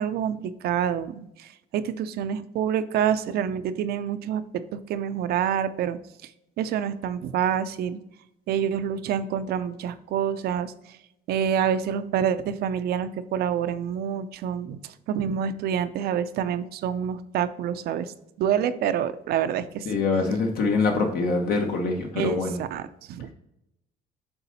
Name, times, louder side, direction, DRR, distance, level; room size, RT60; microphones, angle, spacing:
voice 1, 0.0-4.4 4.7-6.3 6.6-8.0 8.5-11.0 11.3-18.1 18.4-19.9 22.1-23.3, right 8 dB, 65° right, 12 dB, 0.5 m, -27 dB
voice 2, 19.9-22.6, left 3 dB, 65° left, 2 dB, 1.1 m, -24 dB
7.0 x 3.9 x 4.1 m, 0.85 s
cardioid pair, 110°, 17 cm